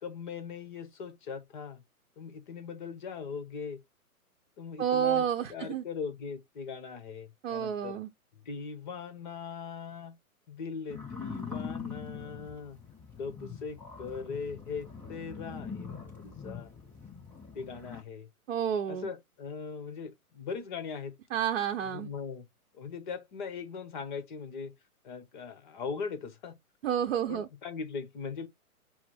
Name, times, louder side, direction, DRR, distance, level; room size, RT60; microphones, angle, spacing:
voice 1, 0.0-1.8 2.2-3.8 4.6-8.0 8.4-10.2 10.5-12.8 13.2-16.7 17.5-18.3 18.9-21.2 21.8-22.4 22.7-24.7 25.0-26.6 27.3-28.5, left 5 dB, 35° left, 0.9 m, -40 dB
voice 2, 4.8-5.8 7.4-8.1 18.5-19.1 21.3-22.1 26.8-27.5, right 9 dB, 50° right, 0.8 m, -30 dB
sound 1, 10.9-18.0, left 5 dB, 5° left, 0.6 m, -43 dB
5.9 x 2.0 x 4.5 m
hypercardioid pair, 135°, 44 cm